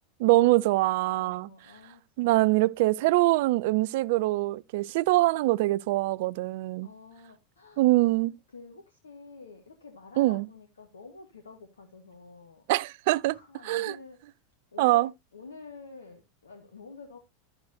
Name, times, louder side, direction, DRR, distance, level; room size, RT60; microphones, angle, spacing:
voice 1, 0.2-1.5 2.2-6.9 7.8-8.4 10.2-10.5 12.7-13.4 13.6-13.9 14.8-15.1, right 18 dB, 60° right, 0.4 m, -24 dB
voice 2, 1.1-2.3 6.8-8.1 8.5-12.6 13.2-14.2 14.7-15.1 15.3-17.2, left 4 dB, 80° left, 1.7 m, -48 dB
12.0 x 7.8 x 2.8 m
figure-of-eight pair, 85°, 0 cm